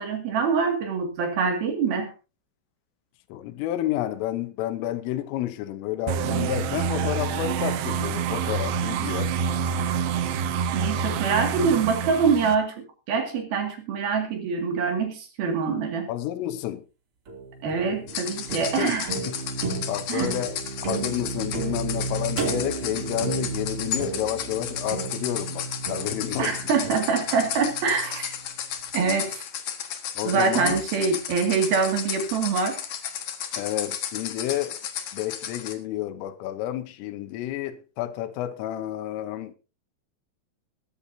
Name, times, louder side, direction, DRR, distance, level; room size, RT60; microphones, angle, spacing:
voice 1, 0.0-2.1 10.7-16.1 17.6-19.1 20.1-20.3 26.4-28.3 28.9-29.5 30.2-32.8, right 5 dB, 55° right, 3.6 m, -25 dB
voice 2, 3.3-9.3 16.1-16.9 18.8-19.0 19.3-19.4 19.9-20.6 20.8-26.6 30.2-30.8 33.6-34.8 35.1-39.6, left 12 dB, 85° left, 3.5 m, -30 dB
sound 1, 6.1-12.6, right 7 dB, 75° right, 2.8 m, -27 dB
sound 2, 17.3-28.5, right 4 dB, 35° right, 2.6 m, -33 dB
sound 3, 18.1-35.7, left 9 dB, 60° left, 2.5 m, -34 dB
22.0 x 11.0 x 2.7 m
omnidirectional pair, 5.7 m